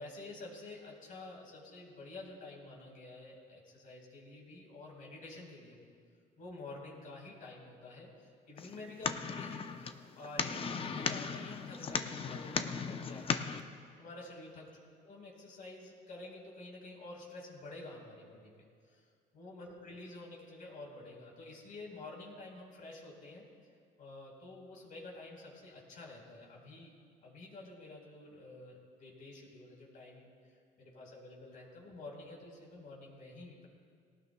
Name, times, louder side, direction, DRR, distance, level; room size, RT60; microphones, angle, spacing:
voice 1, 0.0-5.8 6.4-13.2 14.0-14.7 14.9-19.0 19.3-23.4 24.0-26.9 27.2-33.7, left 2 dB, 55° left, -2 dB, 4.1 m, -49 dB
sound 1, 8.6-13.6, left 5 dB, 35° left, 0.6 m, -37 dB
19.0 x 18.5 x 2.2 m, 2.2 s
cardioid pair, 110°, 17 cm